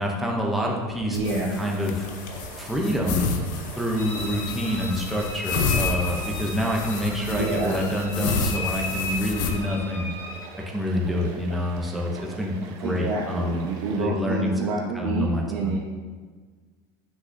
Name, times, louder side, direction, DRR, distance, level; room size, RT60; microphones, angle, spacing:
voice 1, 0.0-2.1 2.6-3.3 3.8-10.1 10.7-13.7 14.0-14.5 14.9-15.8, equal, ahead, -1 dB, 0.5 m, -27 dB
sound 1, 1.1-9.5, left 5 dB, 80° left, 0.8 m, -30 dB
voice 2, 1.1-1.7 7.3-7.8 12.8-15.8, right 3 dB, 70° right, -3 dB, 0.9 m, -28 dB
sound 2, 1.5-14.1, right 4 dB, 40° right, 0.8 m, -44 dB
sound 3, 4.0-10.4, left 2 dB, 25° left, 1.7 m, -35 dB
7.8 x 6.2 x 2.6 m, 1.5 s
cardioid pair, 180°, 10 cm